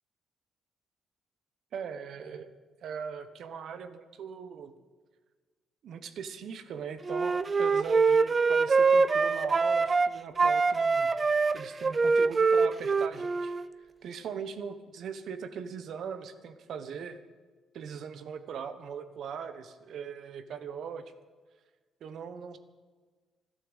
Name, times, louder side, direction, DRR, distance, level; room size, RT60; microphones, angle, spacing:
voice 1, 1.7-2.5 2.8-4.7 5.8-11.1 11.5-17.2 17.7-21.1 22.0-22.6, right 7 dB, 70° right, 11 dB, 1.2 m, -40 dB
Wind instrument woodwind instrument, 7.1-10.1 10.4-13.7, right 4 dB, 35° right, 0.5 m, -24 dB
13.0 x 12.0 x 8.2 m, 1.4 s
cardioid pair, 90°, 0 cm